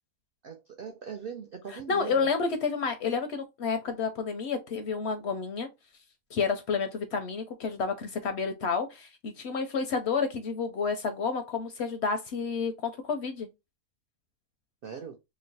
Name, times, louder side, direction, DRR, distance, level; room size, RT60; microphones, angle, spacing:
voice 1, 0.4-2.3 14.8-15.2, right 7 dB, 65° right, 0.5 m, -40 dB
voice 2, 1.7-5.7 6.3-13.5, left 5 dB, 65° left, 0.7 m, -30 dB
3.0 x 2.1 x 3.9 m
omnidirectional pair, 1.5 m